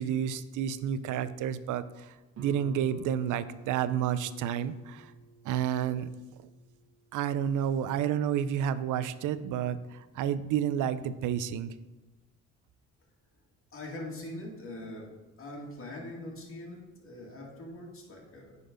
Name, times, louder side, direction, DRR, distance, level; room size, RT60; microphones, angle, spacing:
voice 1, 0.0-5.1 5.4-6.1 7.1-11.7, right 9 dB, 85° right, 14 dB, 0.5 m, -30 dB
Guitar, 2.3-7.8, right 3 dB, 55° right, 1.4 m, -51 dB
voice 2, 13.7-15.1 15.4-18.6, left 1 dB, 45° left, -2 dB, 2.4 m, -42 dB
9.2 x 4.2 x 5.1 m, 1.1 s
cardioid pair, 90°, 30 cm